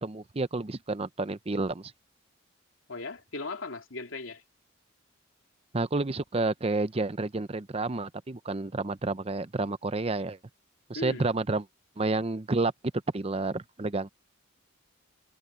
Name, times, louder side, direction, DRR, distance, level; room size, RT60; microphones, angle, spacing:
voice 1, 0.0-1.9 5.7-10.4 10.9-11.7 12.0-12.7 13.1-14.1, right 3 dB, 30° right, 0.6 m, -30 dB
voice 2, 2.9-4.4 10.9-11.2, left 3 dB, 85° left, 2.8 m, -37 dB
head